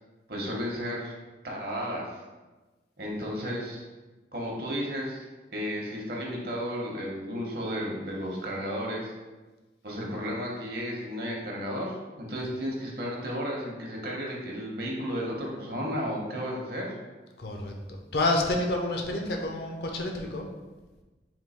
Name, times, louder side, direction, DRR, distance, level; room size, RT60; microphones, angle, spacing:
voice 1, 0.3-1.2 1.4-2.2 3.0-3.8 4.3-5.2 5.5-9.1 9.8-17.0, equal, 55° right, -2 dB, 0.9 m, -33 dB
voice 2, 17.4-17.7 18.1-20.5, left 2 dB, 65° left, 2 dB, 0.6 m, -28 dB
3.7 x 2.7 x 4.1 m, 1.2 s
head